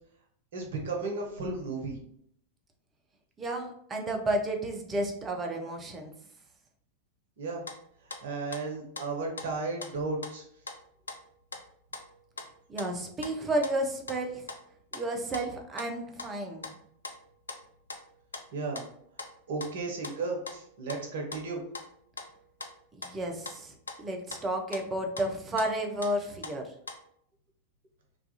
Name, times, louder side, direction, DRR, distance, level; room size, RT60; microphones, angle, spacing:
voice 1, 0.5-2.0 7.4-7.6 8.2-10.4 18.5-18.8 19.5-21.6, right 3 dB, 60° right, 1 dB, 0.6 m, -34 dB
voice 2, 3.4-6.1 12.7-14.4 14.9-16.7 22.9-26.7, right 1 dB, 20° right, 3 dB, 0.4 m, -32 dB
sound 1, 7.6-8.2 8.5-9.9 10.2-23.2 23.5-27.0, left 3 dB, 75° left, 0.3 m, -43 dB
2.3 x 2.3 x 2.7 m, 0.65 s
figure-of-eight pair, 90°, 0 cm